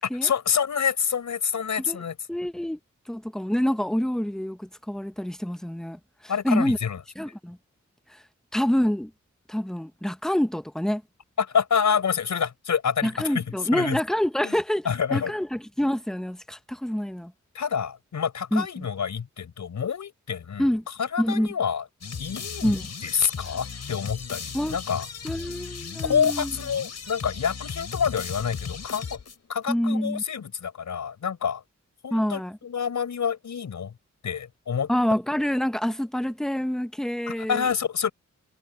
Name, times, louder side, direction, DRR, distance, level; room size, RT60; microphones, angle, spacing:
voice 1, 0.0-2.2 6.3-7.0 11.4-13.4 13.7-14.0 14.4-14.6 14.8-15.3 17.5-20.7 21.0-21.8 22.2-25.1 26.0-29.2 29.5-31.6 32.0-33.9 34.2-34.9 37.3-38.1, left 7 dB, 75° left, 4.9 m, -27 dB
voice 2, 2.3-2.8 3.1-6.0 6.4-6.8 7.2-7.6 8.5-9.1 9.5-11.0 13.0-17.3 18.5-18.9 20.6-20.8 21.2-21.5 22.6-22.8 24.5-24.8 25.2-26.5 29.7-30.2 32.1-32.6 34.9-37.6, equal, ahead, 0.8 m, -26 dB
sound 1, 22.0-29.7, left 6 dB, 60° left, 5.7 m, -36 dB
wide cardioid pair, 135°, 29 cm